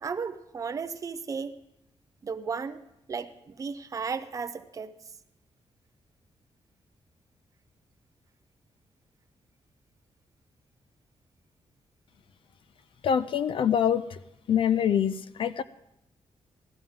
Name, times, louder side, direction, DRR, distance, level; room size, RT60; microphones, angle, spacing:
voice 1, 0.0-1.5 2.2-4.9, right 5 dB, 35° right, 10 dB, 0.6 m, -35 dB
voice 2, 13.0-14.2 14.5-15.6, left 8 dB, 55° left, 15 dB, 0.4 m, -25 dB
16.0 x 13.0 x 3.6 m, 0.83 s
wide cardioid pair, 165°, 10 cm